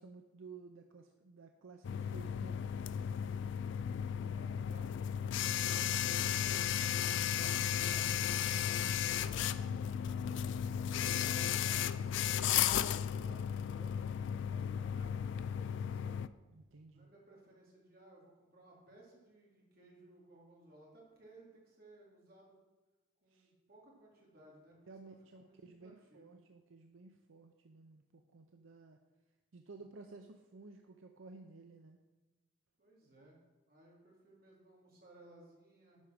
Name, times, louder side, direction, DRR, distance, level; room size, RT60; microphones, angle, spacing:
voice 1, 0.0-3.7 16.5-17.1 23.3-23.5 24.9-29.0 29.5-32.0, right 4 dB, 75° right, 5 dB, 0.6 m, -55 dB
sound 1, 1.8-16.3, left 9 dB, 65° left, 0.3 m, -34 dB
voice 2, 4.1-6.8 7.4-10.5 10.8-14.0 14.4-16.3 16.9-22.6 23.2-26.4 32.8-33.4 33.7-36.0, right 1 dB, 45° right, -4 dB, 2.8 m, -60 dB
11.0 x 4.9 x 5.9 m, 1.1 s
head